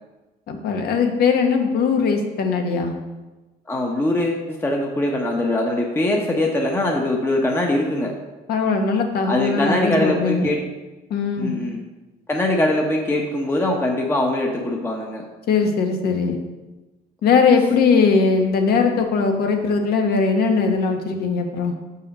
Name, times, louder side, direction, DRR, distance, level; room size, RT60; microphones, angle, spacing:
voice 1, 0.5-2.9 8.5-10.5 11.1-11.5 15.5-16.4 17.2-21.7, left 5 dB, 70° left, 4 dB, 1.3 m, -20 dB
voice 2, 3.7-8.1 9.3-10.6 11.4-11.8 12.3-15.3, left 1 dB, 15° left, 0 dB, 1.0 m, -22 dB
6.2 x 5.6 x 6.5 m, 1.1 s
cardioid pair, 110°, 17 cm